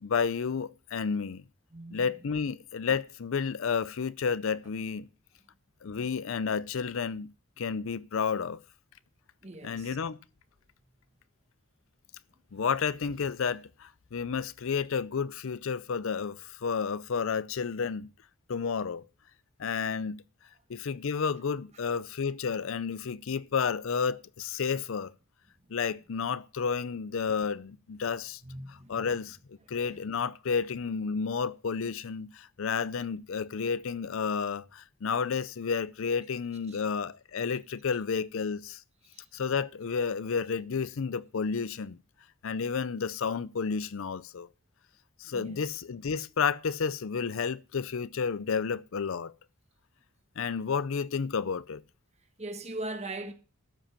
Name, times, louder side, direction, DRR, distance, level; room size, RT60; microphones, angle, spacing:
voice 1, 0.0-1.4 1.9-5.1 5.8-7.3 7.6-8.6 9.6-10.2 12.5-18.1 18.5-19.0 19.6-20.2 20.7-25.1 25.7-28.4 28.7-38.8 39.3-42.0 42.4-44.5 45.2-49.3 50.4-51.8, left 6 dB, 65° left, 0.5 m, -31 dB
voice 2, 1.7-2.0 9.4-10.0 28.4-29.0 36.7-36.8 39.1-39.3 45.3-45.6 52.4-53.3, right 2 dB, 30° right, 1.3 m, -40 dB
12.5 x 5.3 x 7.0 m
head